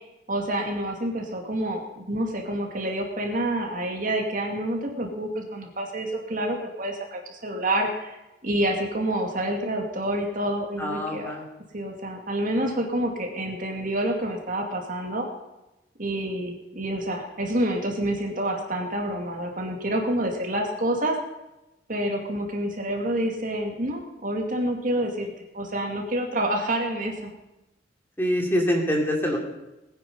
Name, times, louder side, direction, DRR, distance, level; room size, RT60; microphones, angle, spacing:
voice 1, 0.3-11.3 11.7-15.3 16.0-21.2 21.9-27.3, right 1 dB, 45° right, 2 dB, 2.5 m, -28 dB
voice 2, 10.8-11.4 28.2-29.4, equal, 10° left, 1 dB, 2.7 m, -25 dB
20.5 x 9.8 x 5.5 m, 0.97 s
head